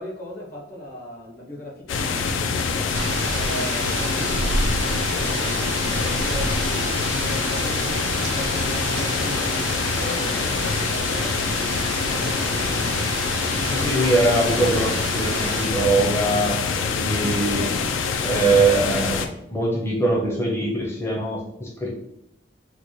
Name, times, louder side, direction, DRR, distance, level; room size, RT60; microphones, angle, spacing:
voice 1, 0.0-2.7 3.3-10.3 10.6-13.1 17.4-17.8, left 1 dB, 50° left, -2 dB, 0.8 m, -37 dB
sound 1, 1.9-19.3, left 5 dB, 80° left, 0.4 m, -25 dB
sound 2, 2.9-15.7, right 4 dB, 65° right, 0.3 m, -30 dB
voice 2, 13.6-17.6 18.2-21.9, right 2 dB, 15° left, -3 dB, 0.5 m, -22 dB
3.9 x 2.2 x 3.0 m, 0.81 s
head